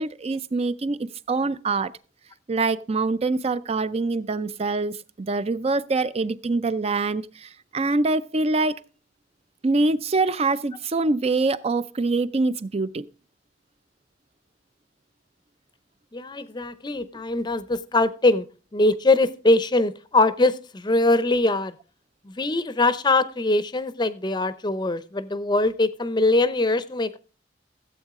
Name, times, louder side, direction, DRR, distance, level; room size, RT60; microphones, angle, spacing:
voice 1, 0.0-1.9 2.5-8.8 9.6-13.1, right 3 dB, 35° right, 0.5 m, -24 dB
voice 2, 16.1-18.5 18.7-21.7 22.2-27.2, left 2 dB, 25° left, 0.6 m, -22 dB
15.5 x 8.2 x 3.6 m
head